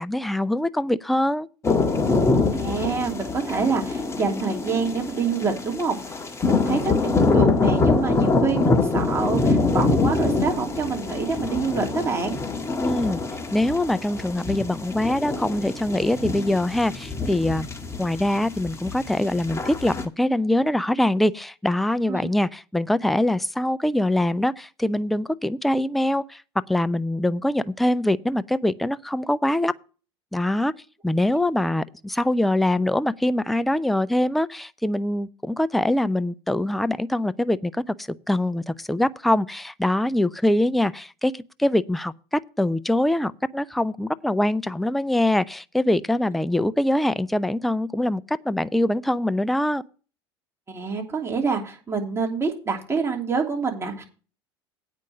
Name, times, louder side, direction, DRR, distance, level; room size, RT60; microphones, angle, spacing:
voice 1, 0.0-1.5 12.8-13.2 13.5-17.7 18.0-26.4 26.7-29.7 30.3-30.7 31.0-49.8, left 1 dB, ahead, 0.4 m, -23 dB
sound 1, 1.6-20.1, left 3 dB, 20° left, 1.6 m, -24 dB
voice 2, 2.6-6.2 6.4-12.4 22.1-22.3 50.7-54.0, right 5 dB, 20° right, 3.0 m, -26 dB
8.9 x 5.3 x 7.6 m
hypercardioid pair, 80°, 14 cm